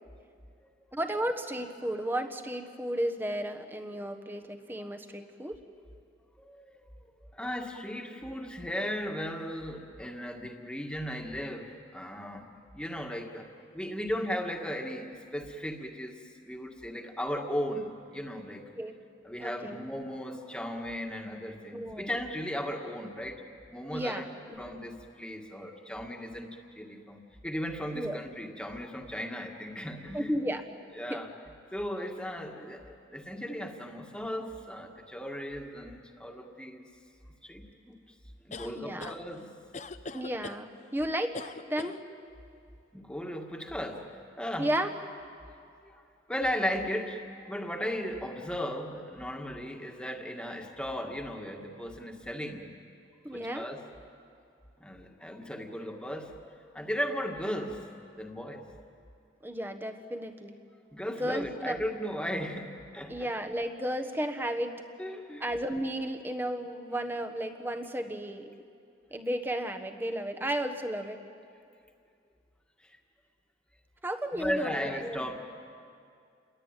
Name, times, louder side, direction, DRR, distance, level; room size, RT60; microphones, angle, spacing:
voice 1, 0.9-5.6 18.8-18.9 19.4-19.8 21.7-22.1 23.9-24.2 24.5-24.6 27.9-28.2 30.1-30.6 31.1-31.2 38.6-39.1 40.1-41.3 41.7-42.0 44.6-44.9 53.2-53.7 59.4-60.6 61.2-61.8 63.1-64.8 65.4-68.5 69.1-71.2 74.0-75.2, right 1 dB, 10° right, 6 dB, 1.4 m, -33 dB
voice 2, 6.4-6.8 7.3-12.5 12.7-13.5 13.7-18.7 19.2-23.4 23.7-24.3 24.6-30.3 31.0-31.3 31.7-36.8 37.4-38.0 38.4-39.5 42.9-44.1 44.4-44.7 45.8-46.0 46.3-52.7 53.3-53.8 54.8-58.9 60.9-63.3 65.0-65.4 72.8-73.0 74.3-75.3, equal, 5° left, 2 dB, 1.9 m, -36 dB
sound 1, 38.5-39.2 39.7-40.6 41.3-42.0, left 3 dB, 40° left, 0.8 m, -41 dB
30.0 x 22.0 x 9.1 m, 2.4 s
head